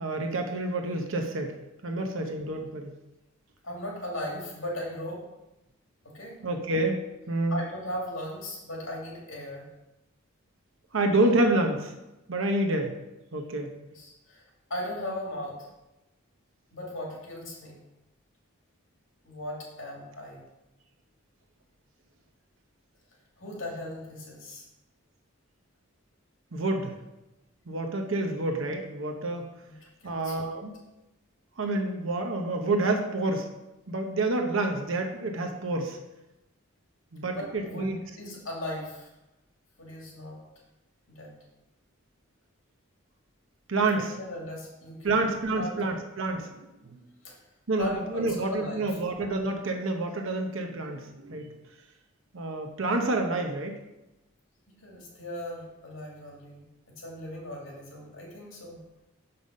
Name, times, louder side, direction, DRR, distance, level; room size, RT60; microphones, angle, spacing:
voice 1, 0.0-1.5 1.8-3.0 6.4-7.0 7.3-7.6 10.9-11.9 12.3-13.0 13.3-13.7 26.5-27.0 27.7-29.5 30.0-30.7 31.6-33.5 33.9-36.0 37.1-38.0 43.7-44.1 45.0-46.5 46.8-47.0 47.7-51.5 52.3-53.7, right 2 dB, 65° right, 3 dB, 0.8 m, -28 dB
voice 2, 3.6-5.2 6.1-6.4 7.5-9.7 13.9-14.4 14.7-15.7 16.7-17.8 19.2-20.4 23.4-24.6 29.6-29.7 30.0-30.3 37.2-37.9 38.2-39.1 39.8-40.4 41.1-41.3 43.9-45.3 45.6-45.8 47.2-47.3 47.8-48.9 54.8-56.6 57.0-58.8, left 1 dB, 70° left, -3 dB, 2.3 m, -37 dB
6.9 x 5.5 x 5.3 m, 0.96 s
head